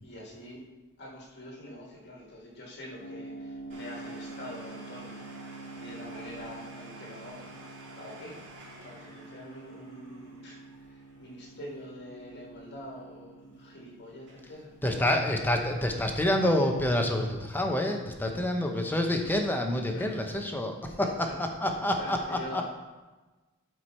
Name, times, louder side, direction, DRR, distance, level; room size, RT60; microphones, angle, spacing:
voice 1, 0.0-0.7 1.0-8.4 8.8-10.6 10.8-15.2 18.3-18.4 19.9-20.1 20.9-21.5 22.0-22.6, left 1 dB, 50° left, -2 dB, 1.5 m, -45 dB
sound 1, 3.0-17.8, right 3 dB, 70° left, 1.1 m, -47 dB
Domestic sounds home sounds, 3.7-13.1 13.4-13.5 14.1-14.4 14.7-15.1 15.5-17.5 18.0-18.1 18.8-18.9, right 1 dB, 55° right, 3.1 m, -52 dB
voice 2, 14.8-21.1 21.4-22.6, left 1 dB, 10° left, 3 dB, 0.8 m, -27 dB
12.5 x 4.7 x 4.4 m, 1.2 s
head